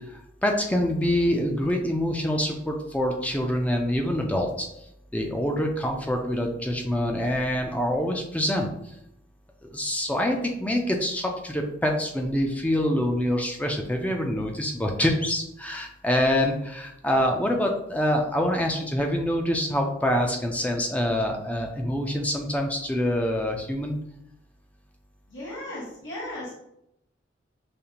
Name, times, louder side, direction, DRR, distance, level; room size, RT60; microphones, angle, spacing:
voice 1, 0.1-4.7 5.1-8.7 9.6-24.0, left 1 dB, 10° left, 2 dB, 0.3 m, -25 dB
voice 2, 25.3-26.5, left 1 dB, 90° left, -9 dB, 1.4 m, -36 dB
5.0 x 2.4 x 2.8 m, 0.80 s
head